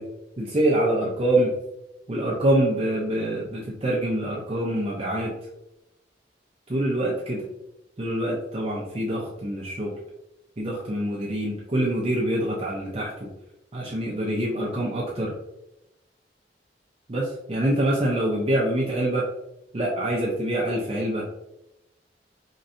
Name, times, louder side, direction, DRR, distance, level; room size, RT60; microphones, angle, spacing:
voice 1, 0.4-1.5 2.1-5.3 6.7-7.5 8.0-10.0 10.6-13.3 13.7-15.3 17.1-19.2 19.7-21.2, right 1 dB, 35° right, -5 dB, 0.6 m, -25 dB
4.0 x 3.2 x 2.6 m, 0.89 s
head